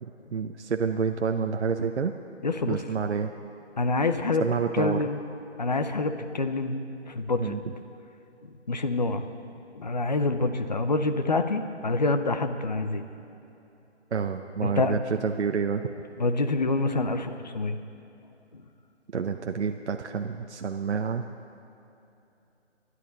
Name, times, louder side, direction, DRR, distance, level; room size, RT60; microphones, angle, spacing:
voice 1, 0.0-2.1 2.7-3.3 4.4-5.0 7.4-7.7 14.1-15.9 19.1-21.3, right 6 dB, 70° right, 5 dB, 0.8 m, -28 dB
voice 2, 2.4-2.8 3.8-4.4 4.8-5.2 5.6-6.8 7.1-7.6 8.7-9.2 9.7-13.0 14.6-14.9 16.2-17.8, left 3 dB, 40° left, 9 dB, 0.7 m, -26 dB
25.0 x 11.5 x 4.0 m, 2.9 s
hypercardioid pair, 170°, 35 cm